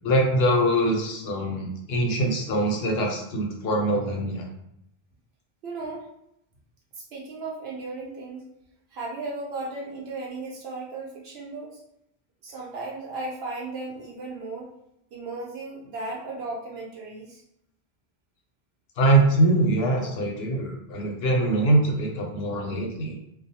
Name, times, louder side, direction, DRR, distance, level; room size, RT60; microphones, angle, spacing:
voice 1, 0.0-4.5 19.0-23.2, right 1 dB, 75° left, 1 dB, 0.8 m, -23 dB
voice 2, 5.6-6.1 6.9-8.5 8.9-11.8 12.4-14.7 15.1-17.4, right 3 dB, 75° right, -3 dB, 0.8 m, -35 dB
2.4 x 2.2 x 2.7 m, 0.80 s
omnidirectional pair, 1.1 m